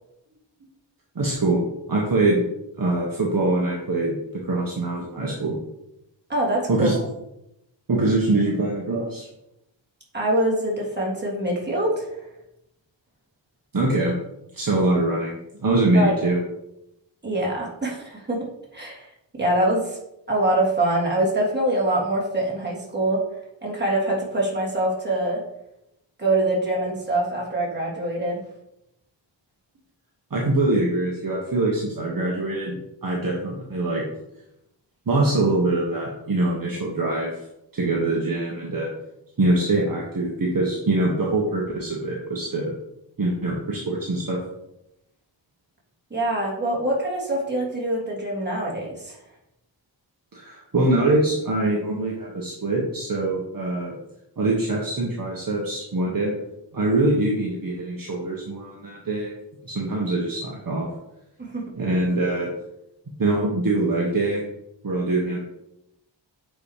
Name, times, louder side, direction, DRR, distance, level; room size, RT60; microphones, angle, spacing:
voice 1, 1.1-1.6 1.9-2.4 2.8-4.2 4.4-5.5 6.7-6.9 7.9-9.3 13.7-14.1 14.5-16.4 30.3-34.0 35.0-37.3 37.7-38.9 39.4-42.7 43.2-44.4 50.3-53.9 54.4-56.3 56.7-59.3 59.6-60.8 61.8-62.5 63.2-64.4 64.8-65.4, right 2 dB, 45° right, -3 dB, 1.7 m, -23 dB
voice 2, 6.3-7.0 10.1-12.1 15.9-16.1 17.2-18.5 18.7-19.1 19.3-20.0 20.3-23.2 23.6-25.4 26.2-28.4 46.1-49.2 61.4-61.6, right 1 dB, 20° right, -4 dB, 3.2 m, -24 dB
8.3 x 5.1 x 5.1 m, 0.86 s
wide cardioid pair, 100°, 46 cm